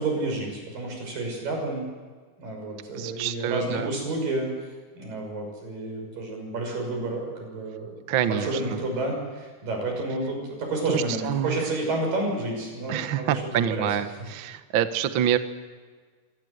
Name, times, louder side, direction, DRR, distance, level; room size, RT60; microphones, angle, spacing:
voice 1, 0.0-1.9 2.4-4.5 5.0-8.0 8.2-14.2, right 2 dB, 90° right, 2 dB, 7.7 m, -30 dB
voice 2, 2.9-3.9 8.1-8.8 10.9-11.6 12.9-15.4, right 10 dB, 65° right, 10 dB, 1.3 m, -27 dB
26.5 x 17.5 x 8.0 m, 1.5 s
omnidirectional pair, 3.8 m